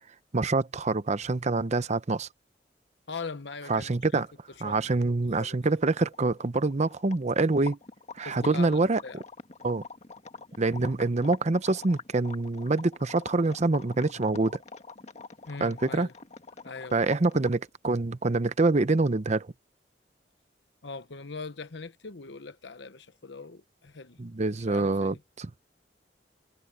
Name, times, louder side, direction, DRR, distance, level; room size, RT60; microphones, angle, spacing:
voice 1, 0.3-2.3 3.7-4.3 4.6-7.8 8.1-9.0 9.6-9.8 10.6-14.6 15.6-16.1 16.9-19.5 24.2-25.5, right 3 dB, 40° right, 0.8 m, -26 dB
voice 2, 3.1-4.2 4.6-4.9 5.4-5.6 8.2-9.2 15.5-16.1 16.6-17.0 20.8-24.2 24.7-25.2, left 4 dB, 85° left, 1.1 m, -41 dB
sound 1, 6.0-17.7, left 4 dB, 40° left, 1.6 m, -45 dB
head